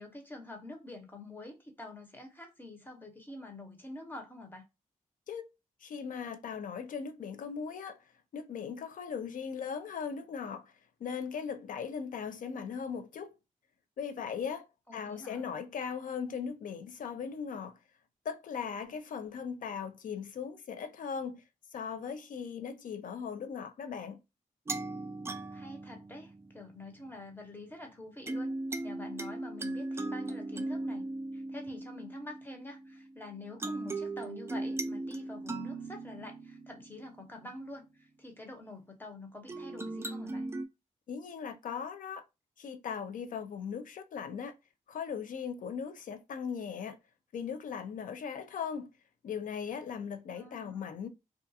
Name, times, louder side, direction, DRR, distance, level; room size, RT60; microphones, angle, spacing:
voice 1, 0.0-4.7 14.9-15.5 25.5-28.5 28.8-31.0 31.3-40.5 50.3-50.9, left 2 dB, 15° left, 0.8 m, -47 dB
voice 2, 5.8-8.1 8.3-10.7 11.0-13.3 14.0-14.7 14.9-17.8 18.2-21.4 21.7-24.2 41.1-42.2 42.6-44.5 44.9-47.0 47.3-48.9 49.2-51.1, left 6 dB, 70° left, 0.4 m, -38 dB
sound 1, 24.7-26.9 28.3-33.0 33.6-37.8 39.5-40.6, right 2 dB, 20° right, 0.3 m, -38 dB
2.3 x 2.3 x 2.6 m
cardioid pair, 90°, 14 cm